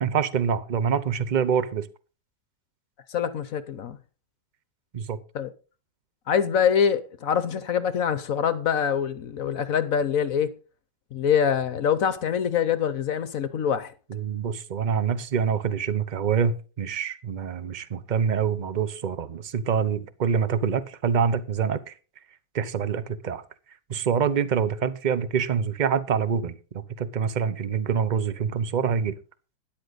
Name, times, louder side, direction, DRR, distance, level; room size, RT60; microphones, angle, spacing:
voice 1, 0.0-1.9 4.9-5.2 14.1-21.9 22.5-23.4 23.9-29.2, right 7 dB, 40° right, 0.6 m, -26 dB
voice 2, 3.1-4.0 5.3-5.5 6.3-10.5 11.1-13.9, left 8 dB, 60° left, 1.1 m, -24 dB
13.0 x 10.5 x 4.0 m
omnidirectional pair, 1.9 m